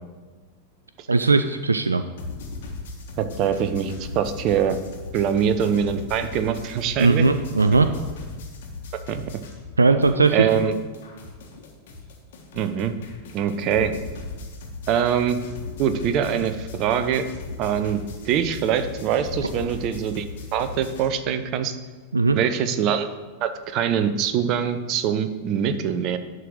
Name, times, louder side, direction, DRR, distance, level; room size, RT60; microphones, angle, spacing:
voice 1, 1.1-2.0 7.0-7.9 9.8-10.5 22.1-22.4, right 3 dB, 75° right, 9 dB, 0.3 m, -18 dB
sound 1, 2.2-9.8 10.0-21.1, left 3 dB, 55° left, 1.6 m, -38 dB
voice 2, 3.2-4.8 5.1-7.3 9.1-9.2 10.3-10.7 12.5-13.0 13.3-13.9 14.9-15.4 15.8-17.3 17.6-20.3 20.5-21.7 22.3-23.1 23.4-26.2, right 8 dB, 40° right, 10 dB, 0.6 m, -23 dB
11.0 x 3.9 x 6.3 m, 1.3 s
figure-of-eight pair, 90°, 0 cm